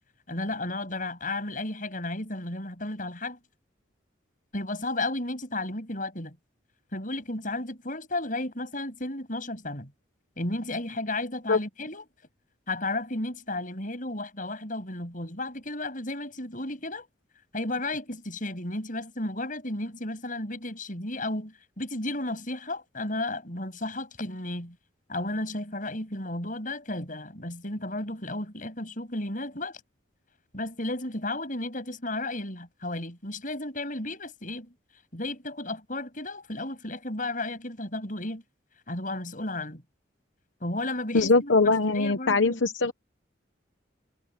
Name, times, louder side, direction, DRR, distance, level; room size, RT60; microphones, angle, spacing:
voice 1, 0.3-3.4 4.5-6.4 6.9-9.9 10.4-12.1 12.7-17.1 17.5-24.8 25.1-29.8 30.5-34.7 35.1-38.4 38.9-39.8 40.6-42.6, left 2 dB, 45° left, 7.7 m, -33 dB
voice 2, 41.1-42.9, left 3 dB, 85° left, 1.0 m, -22 dB
head